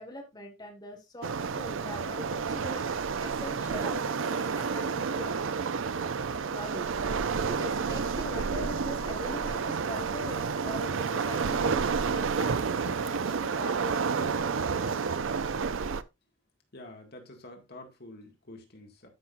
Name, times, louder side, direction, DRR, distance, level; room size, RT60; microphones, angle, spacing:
voice 1, 0.0-5.4 6.5-6.9 7.5-15.1, left 1 dB, 20° left, 1.8 m, -43 dB
Waves surf, 1.2-16.0, right 5 dB, 85° right, 0.6 m, -30 dB
voice 2, 16.7-19.1, left 1 dB, 55° left, 2.2 m, -48 dB
13.0 x 6.0 x 2.6 m
head